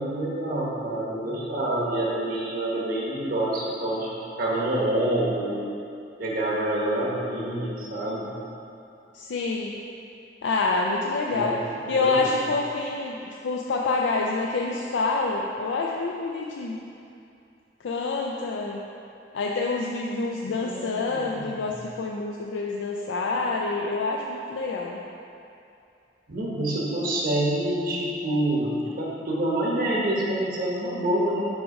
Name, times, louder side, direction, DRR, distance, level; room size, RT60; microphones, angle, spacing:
voice 1, 0.0-4.1 4.4-5.6 6.2-8.3 11.3-12.3 20.5-21.4 26.3-31.5, right 1 dB, 50° right, -5 dB, 1.0 m, -27 dB
voice 2, 9.1-9.8 10.4-11.6 11.9-13.2 13.4-16.8 17.8-18.8 19.3-25.0, left 3 dB, 90° left, -1 dB, 0.4 m, -27 dB
6.1 x 3.6 x 5.2 m, 2.6 s
head